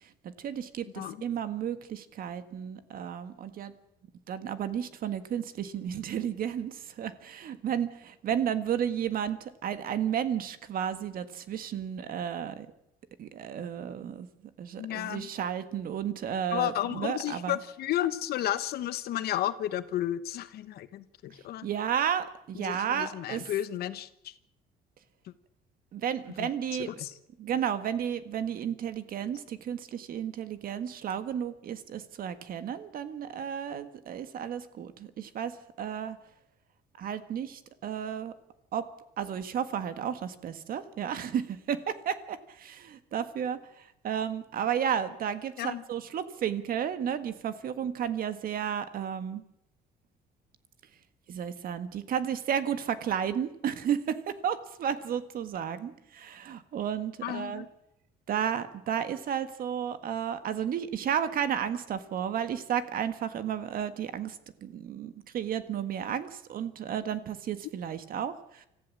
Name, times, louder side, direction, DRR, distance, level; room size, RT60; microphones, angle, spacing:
voice 1, 0.4-3.7 4.3-12.7 13.2-14.3 14.6-17.6 21.6-23.5 25.9-26.9 27.4-36.2 37.0-38.3 38.7-38.8 39.2-49.4 51.3-57.6 58.3-68.7, right 8 dB, 60° right, 11 dB, 1.6 m, -33 dB
voice 2, 14.8-15.3 16.5-21.7 22.5-24.3 26.4-26.5 26.9-27.1 45.6-45.8 57.2-57.7, left 12 dB, 70° left, 13 dB, 1.1 m, -32 dB
25.5 x 14.5 x 7.5 m, 0.82 s
cardioid pair, 110°, 17 cm